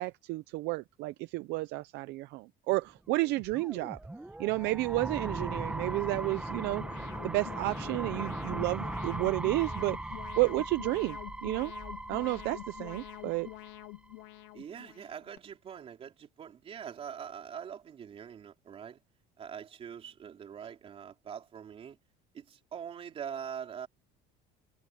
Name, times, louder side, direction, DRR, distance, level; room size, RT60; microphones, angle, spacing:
voice 1, 0.0-4.0 4.4-6.8 7.2-11.7 12.1-13.5, right 21 dB, 60° right, 0.6 m, -31 dB
sound 1, 3.2-14.1, right 2 dB, 5° right, 1.3 m, -39 dB
Alarm, 5.5-15.4, left 22 dB, 70° left, 0.9 m, -47 dB
voice 2, 14.5-19.0 19.4-22.0 22.3-23.9, right 8 dB, 30° right, 3.5 m, -43 dB
cardioid pair, 170°, 20 cm